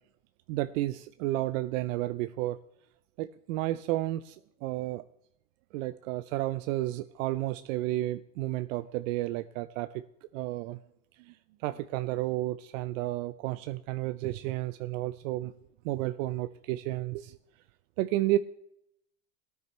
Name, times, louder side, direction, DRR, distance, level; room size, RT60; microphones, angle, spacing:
voice 1, 0.5-2.6 3.2-4.4 4.6-5.0 5.7-9.9 10.3-10.8 11.6-15.5 15.8-17.3 18.0-18.4, right 16 dB, 70° right, 13 dB, 0.5 m, -31 dB
18.0 x 9.7 x 3.2 m, 0.79 s
supercardioid pair, 110°, 41 cm